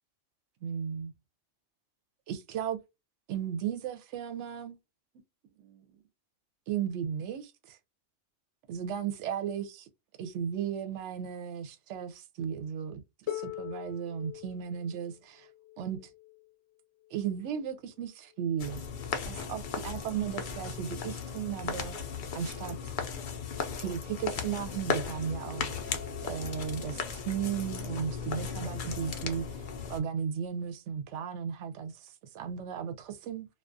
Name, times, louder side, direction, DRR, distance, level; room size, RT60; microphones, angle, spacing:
voice 1, 0.6-1.1 2.3-2.8 3.3-4.8 5.6-6.0 6.7-7.8 8.7-9.9 10.2-15.5 15.8-16.0 17.1-18.8 19.3-22.0 22.3-22.9 23.8-29.6 29.9-33.5, right 8 dB, 75° right, 0.9 m, -35 dB
Harp, 13.3-19.1 20.1-20.2, left 12 dB, 80° left, 0.9 m, -44 dB
sound 1, 18.6-30.0, left 6 dB, 55° left, 0.6 m, -36 dB
2.3 x 2.3 x 2.5 m
omnidirectional pair, 1.3 m